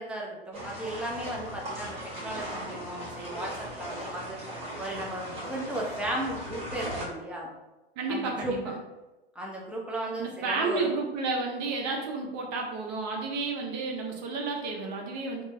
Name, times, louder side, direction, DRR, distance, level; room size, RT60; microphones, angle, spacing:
voice 1, 0.0-7.5 8.1-8.7 9.4-10.9, right 1 dB, 5° right, -3 dB, 0.4 m, -35 dB
sound 1, 0.5-7.0, right 1 dB, 20° right, 1.4 m, -38 dB
voice 2, 8.0-8.7 10.2-15.4, right 3 dB, 45° right, 1 dB, 0.8 m, -31 dB
3.2 x 2.0 x 3.2 m, 1.0 s
hypercardioid pair, 110°, 30 cm